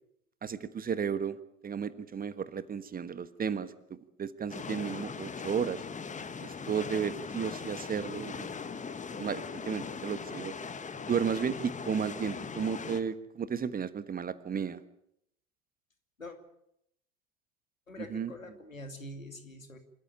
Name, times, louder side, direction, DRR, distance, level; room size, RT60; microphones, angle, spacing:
voice 1, 0.4-1.4 1.6-5.8 6.4-8.5 9.2-10.5 11.1-14.8 18.1-18.3, right 7 dB, 20° right, 14 dB, 1.4 m, -33 dB
sound 1, 4.5-13.0, left 5 dB, 20° left, 1.7 m, -40 dB
voice 2, 17.9-19.8, left 1 dB, 90° left, 8 dB, 2.6 m, -44 dB
27.0 x 14.0 x 8.6 m, 0.75 s
figure-of-eight pair, 75°, 39 cm